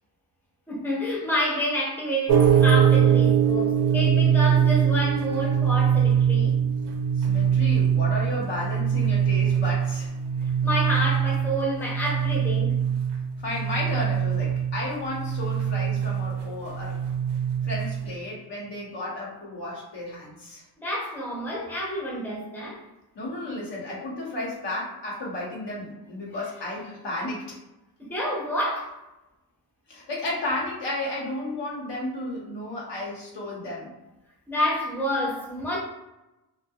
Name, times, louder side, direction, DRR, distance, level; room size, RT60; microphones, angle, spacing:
voice 1, 0.7-6.6 10.6-12.8 20.8-22.8 28.0-28.9 34.5-35.8, equal, 5° left, -4 dB, 0.6 m, -28 dB
sound 1, 2.3-18.1, right 8 dB, 85° right, 0.5 m, -23 dB
voice 2, 7.2-10.1 13.4-17.1 17.6-20.6 23.1-27.6 29.9-34.0, left 1 dB, 90° left, -4 dB, 1.0 m, -33 dB
2.3 x 2.3 x 2.7 m, 0.98 s
wide cardioid pair, 175°, 40 cm